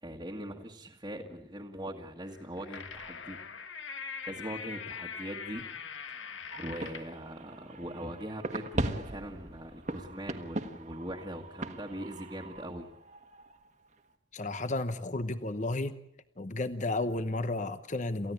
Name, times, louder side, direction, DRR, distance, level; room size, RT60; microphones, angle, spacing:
voice 1, 0.0-3.4 4.3-5.6 6.1-6.3 6.6-12.9, equal, 20° right, -2 dB, 1.7 m, -41 dB
sound 1, 2.3-7.2, left 6 dB, 85° left, 1.6 m, -42 dB
sound 2, 6.5-13.7, right 1 dB, 40° right, 1.5 m, -39 dB
voice 2, 14.3-16.0 16.4-18.3, left 2 dB, 40° left, 12 dB, 0.9 m, -32 dB
28.0 x 15.5 x 8.5 m, 0.76 s
head